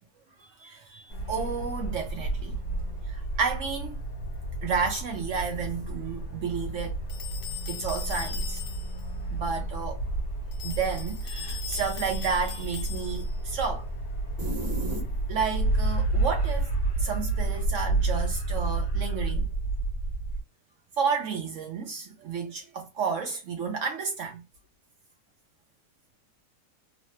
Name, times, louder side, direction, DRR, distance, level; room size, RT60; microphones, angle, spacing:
voice 1, 0.4-2.6 3.1-4.0 4.6-7.0 7.7-8.6 9.3-10.0 10.6-13.9 15.3-19.5 21.0-24.4, right 5 dB, 70° right, 0.7 m, -31 dB
sound 1, 1.1-20.4, right 2 dB, 60° left, 1.4 m, -30 dB
sound 2, 7.1-9.1 10.5-13.4, left 9 dB, 85° left, 1.2 m, -40 dB
sound 3, 14.4-15.6, equal, 40° right, 1.1 m, -35 dB
3.2 x 2.1 x 2.8 m
omnidirectional pair, 1.8 m